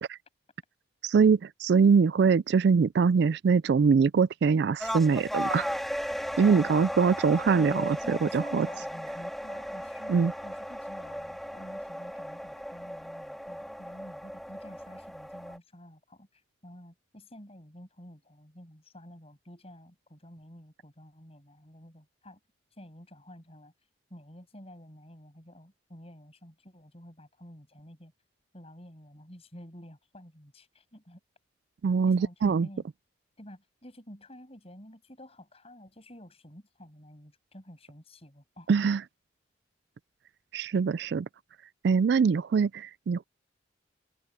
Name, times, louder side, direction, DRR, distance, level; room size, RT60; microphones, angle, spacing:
voice 1, 1.0-5.7 6.4-8.7 10.1-10.3 31.8-32.7 38.7-39.0 40.5-41.3 41.8-43.2, right 5 dB, 60° right, 0.3 m, -23 dB
sound 1, 4.8-15.6, equal, ahead, 2.0 m, -36 dB
voice 2, 7.5-22.4 22.8-23.7 24.1-28.1 28.5-31.2 32.1-32.8 33.4-38.7, equal, 30° left, 7.4 m, -50 dB
open air
head